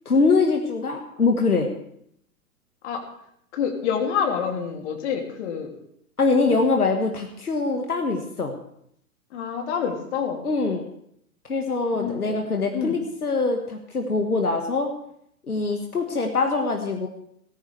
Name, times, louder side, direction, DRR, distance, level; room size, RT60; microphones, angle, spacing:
voice 1, 0.1-1.7 6.2-8.5 10.4-10.9 11.5-14.9 15.5-17.1, left 3 dB, 80° left, 3 dB, 1.8 m, -23 dB
voice 2, 3.5-5.7 9.3-10.5 11.9-12.9, left 7 dB, 45° left, 2 dB, 3.0 m, -27 dB
18.5 x 14.0 x 3.4 m, 0.73 s
figure-of-eight pair, 110°, 45 cm